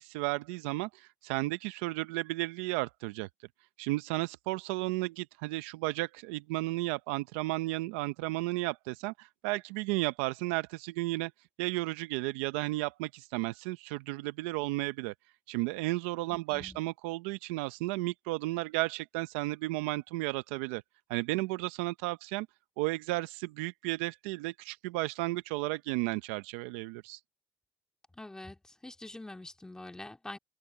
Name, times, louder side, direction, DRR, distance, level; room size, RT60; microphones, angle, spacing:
voice 1, 0.0-3.3 3.8-11.3 11.6-15.1 15.5-20.8 21.1-22.5 22.8-27.2, right 21 dB, 85° right, 0.7 m, -33 dB
voice 2, 16.5-16.8 28.1-30.4, left 2 dB, 10° left, 2.5 m, -45 dB
open air
supercardioid pair, 85°, 7 cm